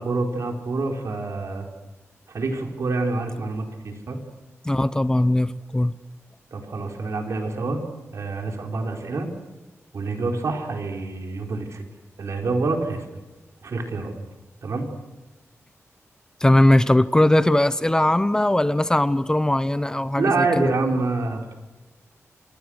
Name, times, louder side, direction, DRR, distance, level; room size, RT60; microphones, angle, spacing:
voice 1, 0.0-1.7 2.3-4.2 6.5-7.8 8.1-9.3 9.9-11.8 12.2-13.0 13.6-14.1 14.6-14.9 20.2-21.6, right 3 dB, 70° right, 3 dB, 4.6 m, -26 dB
voice 2, 4.6-6.0 16.4-20.7, left 1 dB, 15° left, 14 dB, 0.8 m, -19 dB
29.0 x 26.5 x 6.5 m, 1.1 s
wide cardioid pair, 105°, 5 cm